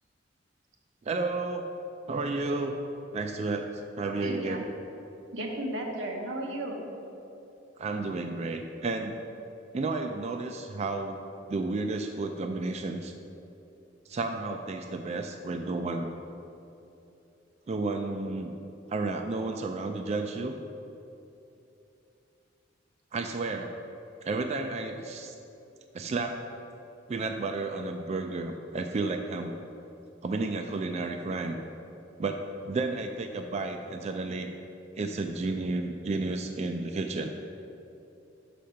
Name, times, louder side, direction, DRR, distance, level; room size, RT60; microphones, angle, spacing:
voice 1, 1.0-1.7 2.1-2.8 3.1-4.7 7.8-9.2 9.7-13.1 14.1-16.1 17.7-18.6 18.9-20.5 23.1-23.8 24.2-25.4 25.9-26.6 27.1-29.5 30.2-31.6 32.2-34.5 35.0-37.4, right 3 dB, 35° right, 5 dB, 0.3 m, -32 dB
voice 2, 4.0-4.6 5.3-6.9, right 1 dB, 90° right, 0 dB, 1.1 m, -34 dB
6.3 x 5.1 x 5.7 m, 2.9 s
head